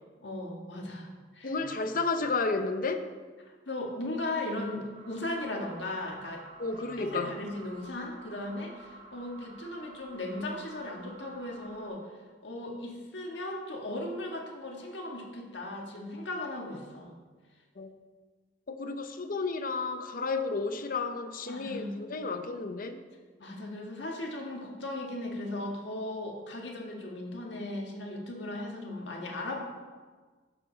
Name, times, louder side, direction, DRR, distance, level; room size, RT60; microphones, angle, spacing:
voice 1, 0.2-1.8 3.6-6.4 7.0-12.0 12.4-17.1 21.4-22.0 23.4-29.6, left 1 dB, 70° left, 0 dB, 1.6 m, -37 dB
voice 2, 1.4-3.1 6.6-7.4 17.8-17.9 18.7-23.0, left 3 dB, 50° left, 8 dB, 0.7 m, -32 dB
sound 1, 4.9-11.9, right 2 dB, 35° right, 2.4 m, -51 dB
11.0 x 7.1 x 3.9 m, 1.4 s
head